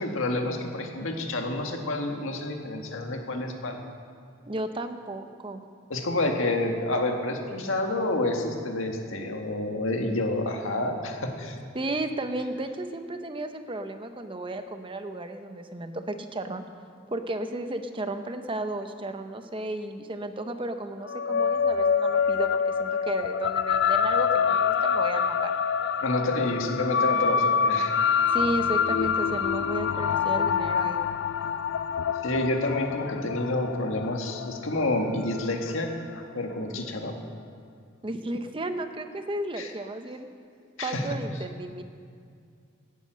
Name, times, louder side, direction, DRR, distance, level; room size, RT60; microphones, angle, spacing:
voice 1, 0.0-3.8 5.9-11.5 26.0-28.1 32.2-37.1 39.6-39.7 40.8-41.0, left 2 dB, 75° left, 3 dB, 1.8 m, -29 dB
voice 2, 4.5-5.6 11.7-16.6 17.1-25.5 28.3-31.0 38.0-40.3 40.8-41.8, right 2 dB, 25° right, 8 dB, 0.7 m, -33 dB
sound 1, 21.1-35.8, left 7 dB, 60° left, 0.4 m, -26 dB
17.0 x 9.6 x 6.3 m, 2.3 s
head